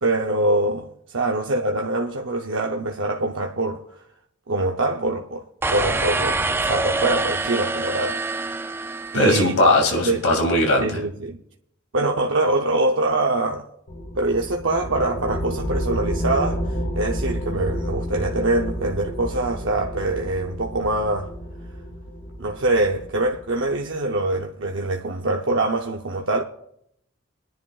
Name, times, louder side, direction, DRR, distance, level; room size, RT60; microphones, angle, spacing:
voice 1, 0.0-3.8 4.5-5.4 5.7-8.2 9.1-9.6 10.0-10.2 10.8-11.4 11.9-13.7 14.2-21.3 22.4-26.4, right 2 dB, 65° right, 0.7 m, -24 dB
sound 1, 5.6-9.8, right 2 dB, 10° right, 0.3 m, -26 dB
voice 2, 9.1-11.0, left 1 dB, 90° left, 2.4 m, -19 dB
sound 2, 13.9-23.9, equal, 60° left, 2.2 m, -30 dB
24.0 x 10.5 x 2.4 m
head